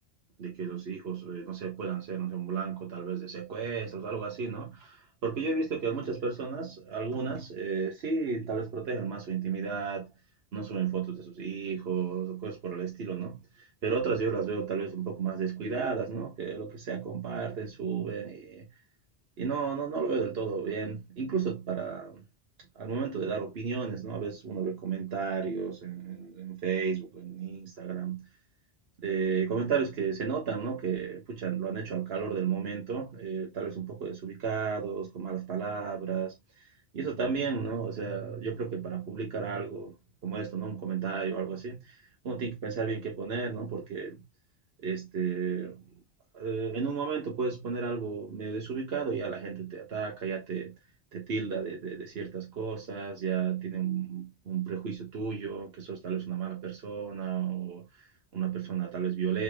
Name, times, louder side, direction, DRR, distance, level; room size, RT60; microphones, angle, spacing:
voice 1, 0.4-10.1 10.5-18.7 19.4-22.2 22.7-28.3 29.0-39.9 40.2-44.2 44.8-45.8 46.3-50.7 51.1-59.4, right 6 dB, 60° right, 1.1 m, -33 dB
4.0 x 3.3 x 3.3 m
omnidirectional pair, 1.2 m